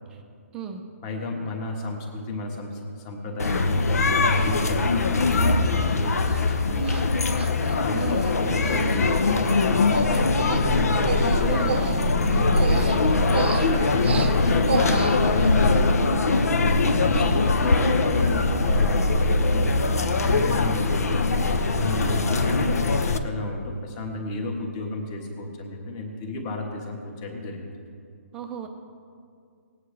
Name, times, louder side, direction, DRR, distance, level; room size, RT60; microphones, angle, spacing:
voice 1, 1.0-7.5 7.7-10.2 10.6-11.6 12.2-12.5 13.4-15.9 16.5-21.3 21.7-27.8, left 2 dB, 20° left, 2 dB, 1.3 m, -33 dB
sound 1, 3.4-23.2, left 3 dB, 80° left, 0.9 m, -22 dB
Human voice, 3.5-3.6 4.3-4.7 5.3-5.4 5.7-6.0 6.2-6.4 6.8-7.0 7.4-8.3 8.6-9.0 9.2-15.5, right 5 dB, 45° right, 0.7 m, -32 dB
voice 2, 7.9-8.3 11.4-12.1 12.4-12.6 17.2-17.4 22.0-22.3 28.3-28.7, right 6 dB, 10° right, 4 dB, 0.5 m, -34 dB
19.0 x 9.0 x 3.3 m, 2.3 s
hypercardioid pair, 175°, 8 cm